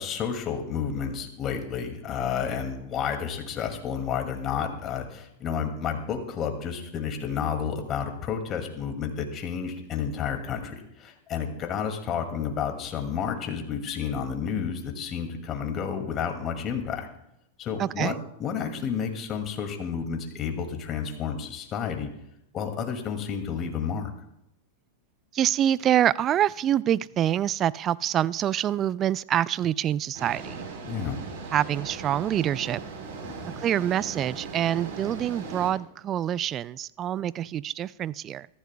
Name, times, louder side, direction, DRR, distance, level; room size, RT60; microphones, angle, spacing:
voice 1, 0.0-17.1 17.6-18.1 18.4-22.1 22.5-24.1 30.8-31.2 33.2-33.6, left 7 dB, 35° left, 5 dB, 2.3 m, -31 dB
voice 2, 17.8-18.2 25.3-30.6 31.5-32.8 33.6-38.5, right 11 dB, 35° right, 21 dB, 0.3 m, -26 dB
sound 1, 30.1-35.7, right 4 dB, 60° right, 4.1 m, -39 dB
22.5 x 14.0 x 2.3 m, 0.81 s
figure-of-eight pair, 95°, 0 cm